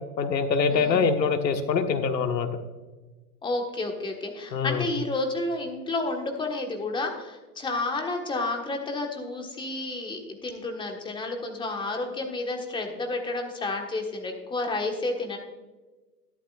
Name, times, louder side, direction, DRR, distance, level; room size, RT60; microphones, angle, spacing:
voice 1, 0.2-2.5 4.5-4.8, left 5 dB, 80° left, 6 dB, 1.5 m, -24 dB
voice 2, 0.7-1.0 3.4-15.4, left 2 dB, 10° left, 3 dB, 1.4 m, -31 dB
13.0 x 11.5 x 2.5 m, 1.2 s
hypercardioid pair, 125°, 49 cm